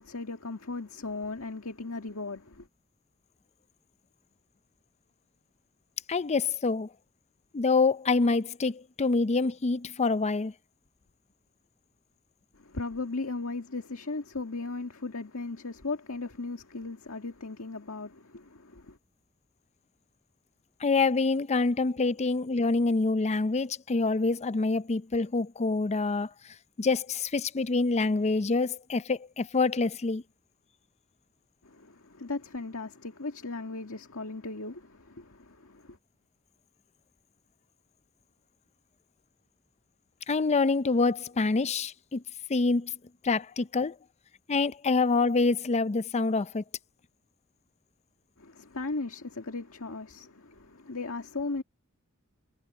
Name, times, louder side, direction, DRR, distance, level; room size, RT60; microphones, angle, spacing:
voice 1, 0.0-2.7 12.5-19.0 31.6-36.0 48.4-51.6, left 3 dB, 70° left, 2.0 m, -37 dB
voice 2, 6.1-6.9 7.5-10.5 20.8-26.3 26.8-30.2 40.3-42.2 42.5-42.9 43.2-44.0 44.5-46.6, left 3 dB, 30° left, 0.5 m, -26 dB
head